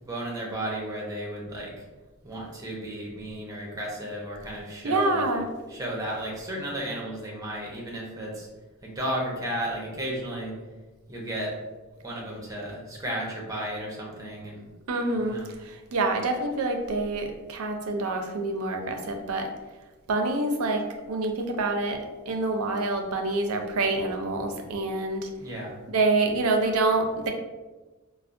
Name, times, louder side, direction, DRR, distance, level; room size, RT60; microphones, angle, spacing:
voice 1, 0.0-1.8 2.2-5.3 5.7-8.5 8.8-10.6 11.1-11.5 12.0-14.7 15.1-15.5 25.4-25.8, right 1 dB, 15° right, -3 dB, 0.7 m, -34 dB
voice 2, 4.8-5.5 14.9-19.5 20.1-25.3 25.9-27.3, right 2 dB, 85° right, 4 dB, 0.5 m, -27 dB
4.2 x 2.1 x 2.5 m, 1.2 s
head